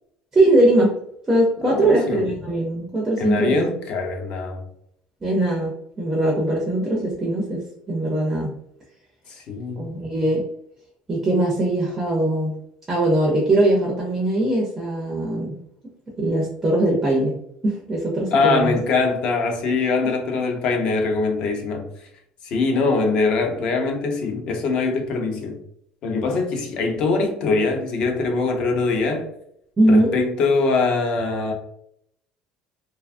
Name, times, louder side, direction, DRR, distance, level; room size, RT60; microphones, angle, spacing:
voice 1, 0.3-0.9 1.3-3.6 5.2-8.5 9.8-10.4 11.1-12.5 12.9-15.5 16.2-18.8 29.8-30.2, right 1 dB, 15° right, -2 dB, 0.4 m, -21 dB
voice 2, 1.6-2.3 3.2-4.6 9.4-9.9 18.3-21.9 22.4-25.6 26.0-29.3 29.9-31.5, left 3 dB, 45° left, 3 dB, 0.5 m, -22 dB
2.5 x 2.3 x 2.4 m, 0.72 s
cardioid pair, 180°, 2 cm